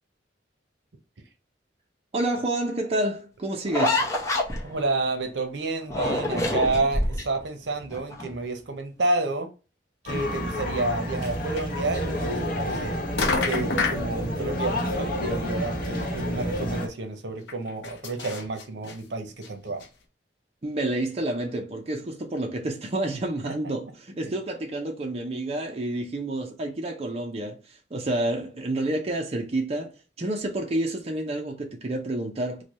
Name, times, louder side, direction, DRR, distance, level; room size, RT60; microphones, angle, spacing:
voice 1, 2.1-4.0 20.6-32.6, right 1 dB, 35° right, 0.5 m, -29 dB
sound 1, 3.7-5.0 5.9-7.4 7.8-8.4, left 1 dB, 15° left, 0.7 m, -26 dB
voice 2, 4.6-9.5 10.0-13.0 13.4-19.8 23.4-23.5 24.2-24.3, right 2 dB, 75° right, 0.7 m, -30 dB
sound 2, 10.1-16.9, equal, 55° left, 1.0 m, -29 dB
sound 3, 11.2-11.3 11.6-11.7 12.7-12.9 13.2-14.1 15.6-15.7 16.1-16.2 16.4-16.5 17.5-19.0 19.4-19.5 19.8-19.9, left 4 dB, 90° left, 0.7 m, -28 dB
3.2 x 2.2 x 4.0 m
head